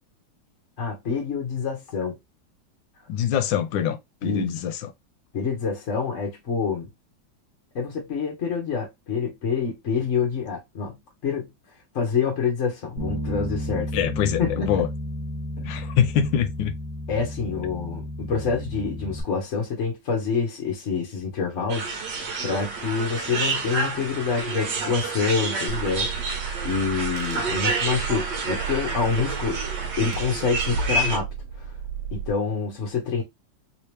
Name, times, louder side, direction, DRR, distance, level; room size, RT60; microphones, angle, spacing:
voice 1, 0.8-2.2 4.2-4.5 5.3-6.9 7.7-11.5 11.9-13.9 14.4-14.8 15.6-15.7 17.1-26.1 26.6-29.6 30.0-31.3 31.6-31.7 32.1-33.2, left 5 dB, 50° left, 1.0 m, -27 dB
voice 2, 3.1-4.9 13.9-14.9 15.7-16.7, left 9 dB, 85° left, 1.3 m, -24 dB
Bass guitar, 13.0-19.2, left 1 dB, 35° right, 1.2 m, -32 dB
sound 1, 21.7-31.2, right 3 dB, 70° right, 1.5 m, -29 dB
Car / Engine, 25.7-32.3, right 6 dB, 85° right, 1.4 m, -33 dB
3.4 x 2.8 x 3.2 m
omnidirectional pair, 2.0 m